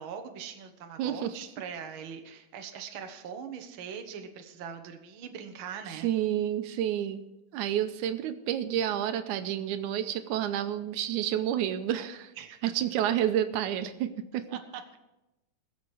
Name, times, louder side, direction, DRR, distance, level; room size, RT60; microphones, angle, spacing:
voice 1, 0.0-6.1 12.4-12.6 14.5-15.0, right 7 dB, 55° right, 6 dB, 1.6 m, -41 dB
voice 2, 1.0-1.4 5.9-7.2 7.5-12.3 12.6-14.4, right 11 dB, 85° right, 9 dB, 2.2 m, -29 dB
21.0 x 7.2 x 4.9 m, 0.96 s
omnidirectional pair, 3.5 m